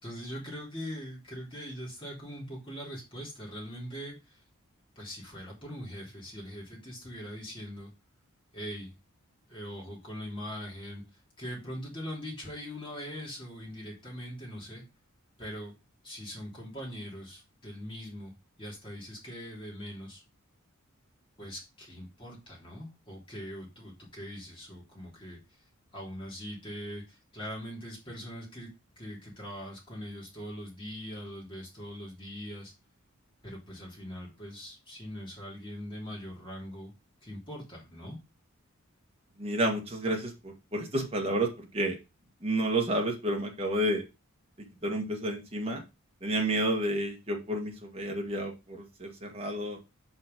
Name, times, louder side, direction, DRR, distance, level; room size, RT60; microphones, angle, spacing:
voice 1, 0.0-4.4 4.9-7.9 8.5-8.9 9.5-14.8 15.4-15.7 16.0-18.3 18.6-20.2 21.4-25.6 25.9-28.7 29.0-32.7 33.4-36.9 37.2-38.2, equal, 25° left, -3 dB, 3.2 m, -42 dB
voice 2, 39.4-42.0 42.4-44.0 44.8-45.8 46.2-49.8, right 1 dB, 25° right, 1 dB, 1.8 m, -30 dB
5.8 x 5.3 x 5.2 m, 0.27 s
head